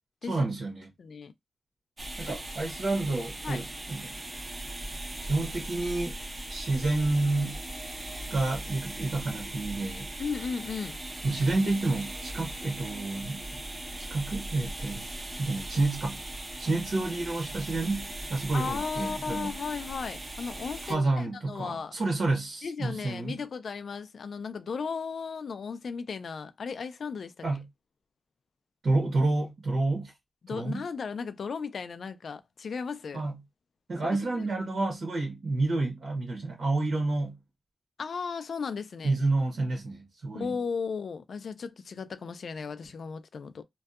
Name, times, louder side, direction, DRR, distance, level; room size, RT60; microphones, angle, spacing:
voice 1, 0.3-0.9 2.2-4.1 5.2-6.2 6.5-7.6 8.3-10.1 11.2-13.6 14.0-15.1 15.4-16.2 16.6-19.5 20.8-23.4 27.4-27.7 28.8-30.1 30.5-30.8 33.1-33.4 33.9-37.4 39.0-40.6, right 2 dB, 90° right, 0.9 m, -29 dB
voice 2, 1.0-1.3 2.2-2.4 3.4-3.6 10.2-11.0 18.5-22.0 22.6-27.4 30.4-33.3 34.1-34.5 38.0-39.2 40.3-43.6, left 5 dB, 85° left, 0.3 m, -35 dB
sound 1, 2.0-20.9, right 1 dB, 30° right, 0.6 m, -39 dB
2.7 x 2.2 x 2.2 m
wide cardioid pair, 165°, 0 cm